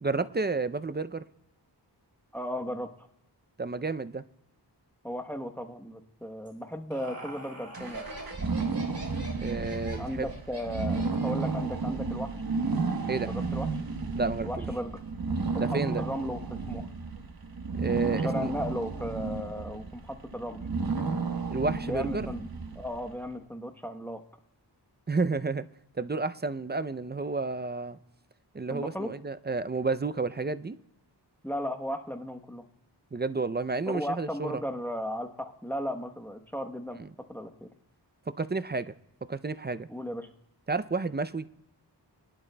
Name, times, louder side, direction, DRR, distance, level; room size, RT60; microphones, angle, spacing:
voice 1, 0.0-1.2 3.6-4.2 9.4-10.3 13.1-13.3 14.2-14.7 15.6-16.0 17.7-18.5 21.5-22.3 25.1-25.6 25.9-28.0 28.5-30.8 33.1-34.6 37.0-37.1 38.3-38.9 39.3-39.9 40.7-41.5, right 3 dB, 25° right, 13 dB, 0.5 m, -31 dB
voice 2, 2.3-3.1 5.0-8.0 10.0-12.3 13.2-13.7 14.4-15.0 15.5-16.9 18.2-20.6 21.8-22.5 22.7-24.2 28.7-29.1 31.4-32.6 33.9-37.0 37.3-37.7 39.9-40.3, equal, 5° left, 3 dB, 1.0 m, -35 dB
Laughter, 6.5-11.6, right 2 dB, 40° right, 3.8 m, -44 dB
sound 1, 7.7-23.2, right 4 dB, 55° right, 1.1 m, -32 dB
22.0 x 11.0 x 2.2 m, 0.81 s
wide cardioid pair, 60°, 42 cm